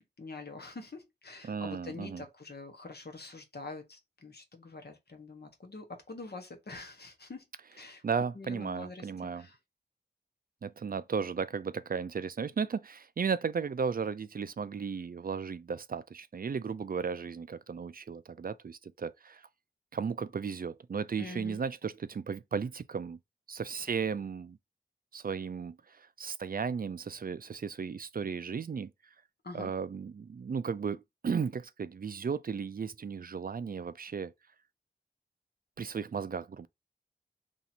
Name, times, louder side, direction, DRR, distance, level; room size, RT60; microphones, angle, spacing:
voice 1, 0.2-7.4 7.7-8.0 8.3-9.1 9.4-9.6 21.2-21.6 29.4-29.7, left 3 dB, 65° left, 1.1 m, -45 dB
voice 2, 1.4-2.2 8.0-9.5 10.6-19.5 19.9-23.2 23.5-24.6 25.1-28.9 29.5-34.3 35.8-36.7, right 6 dB, 55° right, 0.4 m, -35 dB
3.1 x 2.8 x 4.1 m
wide cardioid pair, 50°, 18 cm